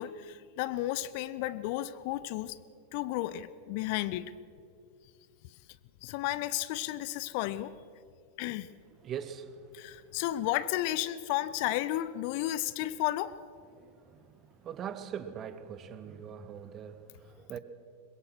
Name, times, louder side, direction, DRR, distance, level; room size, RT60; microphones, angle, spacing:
voice 1, 0.0-2.6 2.9-4.3 6.0-7.7 8.4-8.7 9.7-13.4, left 15 dB, 45° left, 0.7 m, -33 dB
voice 2, 9.0-9.9 13.7-17.6, right 8 dB, 30° right, 1.3 m, -42 dB
23.0 x 22.0 x 6.2 m
figure-of-eight pair, 90°, 0 cm